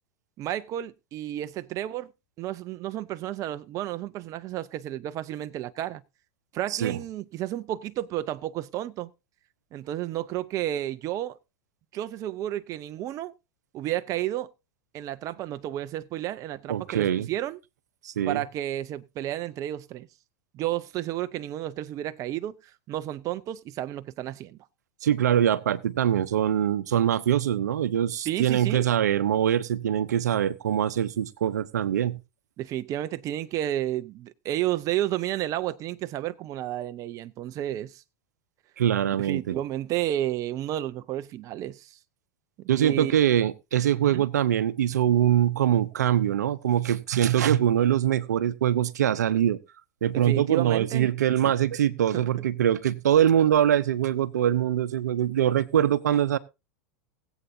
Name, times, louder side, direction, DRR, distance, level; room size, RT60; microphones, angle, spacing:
voice 1, 0.4-2.1 2.4-6.0 6.5-9.1 9.7-11.4 11.9-13.3 13.7-14.5 14.9-17.6 18.3-20.1 20.5-24.6 28.2-28.9 32.6-38.0 39.2-42.0 42.6-43.1 44.0-44.2 50.1-51.1 52.1-52.2, right 13 dB, 40° right, 0.6 m, -31 dB
voice 2, 16.7-17.3 18.0-18.4 25.0-32.2 38.8-39.6 42.7-49.6 50.0-56.4, right 10 dB, 85° right, 0.7 m, -23 dB
20.5 x 8.1 x 2.7 m
hypercardioid pair, 105°, 9 cm